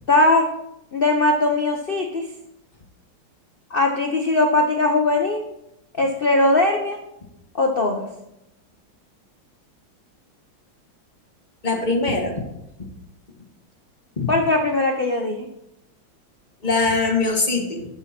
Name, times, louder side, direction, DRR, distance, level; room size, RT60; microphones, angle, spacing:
voice 1, 0.1-0.5 0.9-2.3 3.7-5.4 5.9-7.0 7.5-8.1 14.3-15.5, left 2 dB, 65° left, 3 dB, 0.5 m, -20 dB
voice 2, 11.6-12.4 14.2-14.3 16.6-17.9, left 3 dB, 25° left, 1 dB, 1.6 m, -22 dB
12.0 x 5.6 x 4.3 m, 0.84 s
omnidirectional pair, 2.1 m